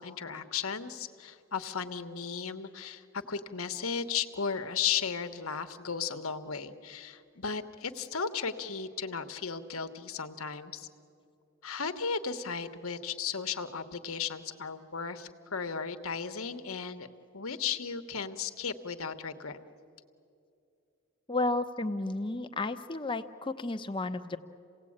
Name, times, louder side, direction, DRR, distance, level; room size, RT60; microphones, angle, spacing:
voice 1, 0.0-10.9 11.6-17.1 17.3-19.6, left 6 dB, 75° left, 9 dB, 1.2 m, -35 dB
voice 2, 21.3-24.4, left 2 dB, 20° left, 8 dB, 0.8 m, -32 dB
28.5 x 17.5 x 8.7 m, 2.6 s
head